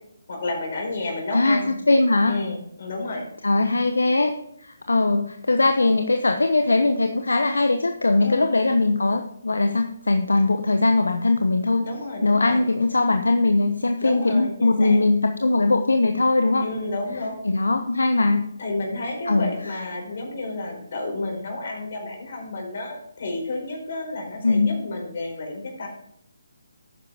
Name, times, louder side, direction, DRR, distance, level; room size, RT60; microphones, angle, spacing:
voice 1, 0.3-1.7 2.3-3.2 8.2-8.5 11.8-12.6 14.0-15.0 16.6-17.4 18.6-25.9, left 2 dB, 50° left, 1 dB, 4.8 m, -31 dB
voice 2, 1.3-2.4 3.4-11.9 12.2-16.7 17.1-17.2 17.4-18.4 19.2-19.8 24.4-24.8, left 2 dB, 70° left, 6 dB, 1.0 m, -20 dB
12.0 x 9.7 x 3.6 m, 0.76 s
figure-of-eight pair, 145°, 0 cm